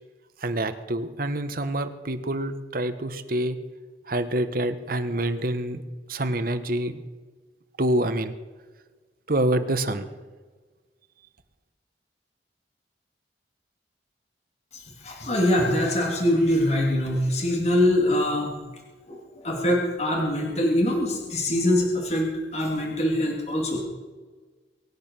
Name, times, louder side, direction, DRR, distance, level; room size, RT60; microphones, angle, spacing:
voice 1, 0.4-3.6 4.1-5.8 6.1-7.0 7.8-8.3 9.3-10.1, right 1 dB, 50° right, 9 dB, 1.2 m, -26 dB
voice 2, 14.7-18.5 19.1-22.3 22.5-23.8, left 1 dB, 35° left, 0 dB, 2.6 m, -23 dB
23.5 x 8.8 x 6.2 m, 1.3 s
head